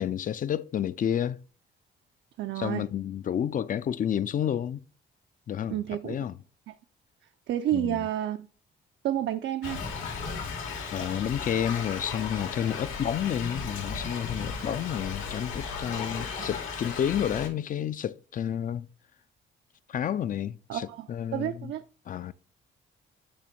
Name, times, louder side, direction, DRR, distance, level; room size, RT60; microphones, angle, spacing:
voice 1, 0.0-1.4 2.6-4.8 5.5-5.8 6.0-6.4 7.7-8.0 10.9-18.9 19.9-21.7 22.1-22.3, left 9 dB, 45° left, 0.4 m, -30 dB
voice 2, 2.4-2.9 5.7-6.2 6.7-6.8 7.5-8.5 9.0-9.8 16.1-16.5 20.7-21.8, right 12 dB, 65° right, 0.5 m, -30 dB
Thunder / Rain, 9.6-17.5, left 5 dB, 85° left, 2.0 m, -35 dB
8.6 x 3.0 x 4.4 m
cardioid pair, 90°, 20 cm